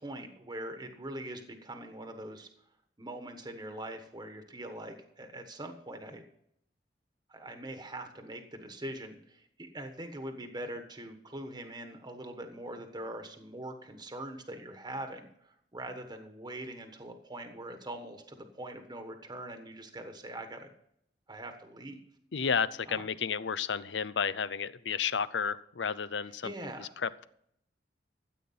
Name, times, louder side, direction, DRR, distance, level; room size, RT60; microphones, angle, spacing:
voice 1, 0.0-2.5 3.0-6.2 7.3-20.7 21.3-22.0 22.9-23.0 26.4-26.9, right 1 dB, 25° right, 1.3 m, -42 dB
voice 2, 22.3-26.5 26.8-27.3, left 6 dB, 85° left, 0.6 m, -32 dB
14.0 x 8.6 x 5.6 m
head